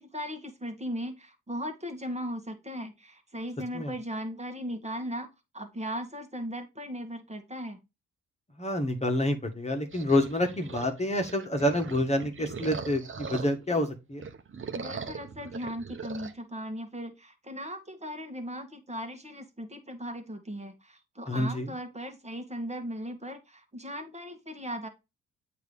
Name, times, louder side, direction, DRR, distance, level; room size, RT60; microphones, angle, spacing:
voice 1, 0.0-5.3 5.5-7.8 14.7-24.9, equal, 20° right, 5 dB, 1.8 m, -37 dB
voice 2, 8.6-14.2 21.3-21.7, left 1 dB, 20° left, 4 dB, 1.7 m, -28 dB
sound 1, 9.9-13.8 14.1-16.3, right 5 dB, 35° right, 1.2 m, -40 dB
8.0 x 3.1 x 5.3 m, 0.24 s
supercardioid pair, 55°, 34 cm